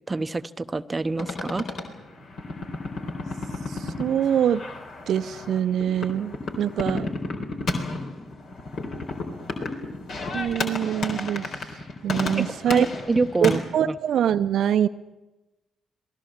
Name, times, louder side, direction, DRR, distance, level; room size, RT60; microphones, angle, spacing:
voice 1, 0.1-1.6 12.4-14.0, right 3 dB, 25° right, 11 dB, 0.8 m, -26 dB
sound 1, 1.2-13.6, left 2 dB, 55° left, 3.9 m, -32 dB
voice 2, 3.7-4.6 5.1-7.1 10.3-11.5 12.0-12.9 13.4-14.9, right 9 dB, 55° right, 11 dB, 0.7 m, -24 dB
26.5 x 18.5 x 7.4 m, 1.1 s
figure-of-eight pair, 40°, 0 cm